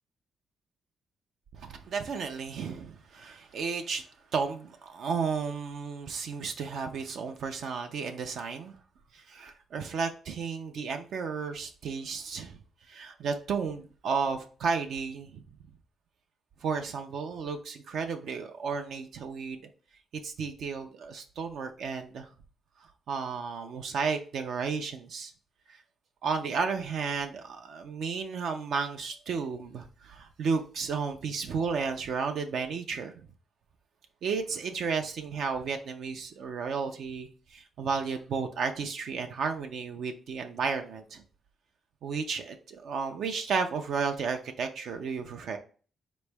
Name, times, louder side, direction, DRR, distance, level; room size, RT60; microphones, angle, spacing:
voice 1, 1.5-4.0 4.3-8.8 9.1-12.6 12.9-15.4 16.6-19.6 20.2-22.3 22.8-25.3 25.7-25.8 26.2-33.3 34.2-41.2 42.0-45.6, right 5 dB, 60° right, 0.5 m, -33 dB
4.3 x 3.0 x 3.4 m
cardioid pair, 150°, 0 cm